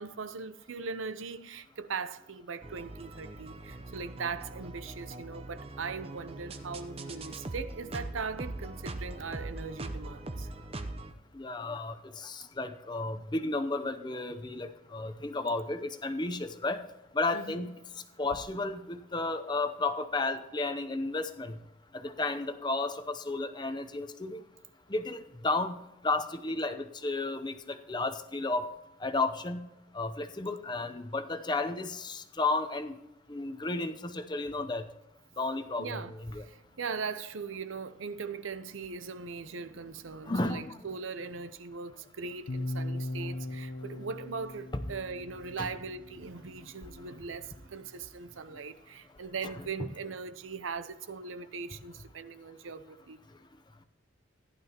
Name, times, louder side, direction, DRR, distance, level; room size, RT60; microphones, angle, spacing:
voice 1, 0.0-10.5 17.3-17.7 35.8-36.1 36.4-53.2, right 5 dB, 90° right, 0.7 m, -40 dB
sound 1, 2.6-11.1, right 2 dB, 30° right, 0.7 m, -41 dB
voice 2, 11.3-16.8 17.1-21.6 21.9-24.4 24.9-28.7 29.0-29.7 29.9-33.0 33.3-34.9 35.4-36.4 40.2-40.8 44.7-44.8 45.6-45.7 46.8-47.1 48.5-48.6 49.4-49.9, left 2 dB, 20° left, 0.6 m, -33 dB
sound 2, 42.5-46.5, left 1 dB, 75° left, 0.8 m, -39 dB
15.0 x 11.0 x 2.9 m
head